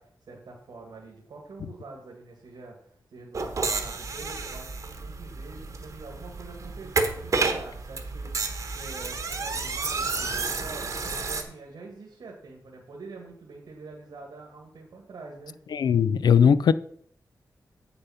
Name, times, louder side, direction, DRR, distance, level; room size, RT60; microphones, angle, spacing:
voice 1, 0.0-15.6, right 3 dB, 75° right, 1.7 m, -45 dB
sound 1, 3.3-11.4, right 4 dB, 50° right, 1.1 m, -31 dB
voice 2, 15.7-16.7, left 7 dB, 75° left, 0.4 m, -19 dB
8.2 x 7.0 x 5.6 m
wide cardioid pair, 170°, 7 cm